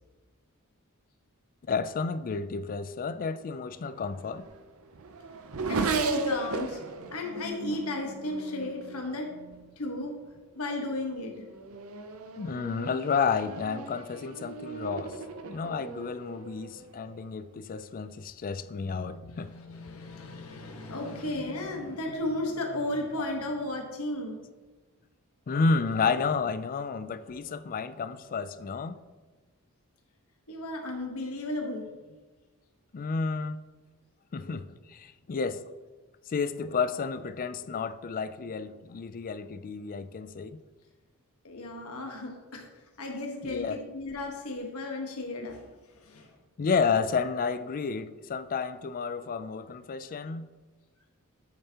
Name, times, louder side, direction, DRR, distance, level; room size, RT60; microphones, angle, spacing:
voice 1, 1.7-4.5 12.4-15.2 15.4-19.8 25.5-29.0 32.9-33.6 34.3-35.6 36.3-40.6 43.4-43.8 46.6-50.5, left 5 dB, 40° left, 0.4 m, -31 dB
Race car auto racing / Accelerating revving vroom, 3.9-9.7 10.6-10.9 11.4-17.3, right 4 dB, 70° right, 0.6 m, -36 dB
voice 2, 5.7-6.8 7.1-9.3 9.8-10.1 10.5-11.3 18.8-24.4 30.5-31.9 41.4-42.7 43.0-45.6 45.9-46.3, left 2 dB, 70° left, 1.3 m, -34 dB
8.7 x 6.9 x 2.9 m
head